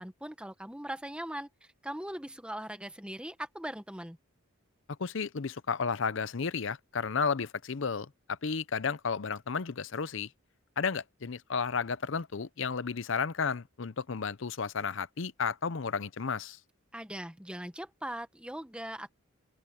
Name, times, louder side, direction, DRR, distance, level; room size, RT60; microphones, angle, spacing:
voice 1, 0.0-4.2 16.9-19.1, right 1 dB, 5° right, 1.2 m, -40 dB
voice 2, 5.0-10.3 10.8-16.6, left 5 dB, 60° left, 0.6 m, -33 dB
open air
head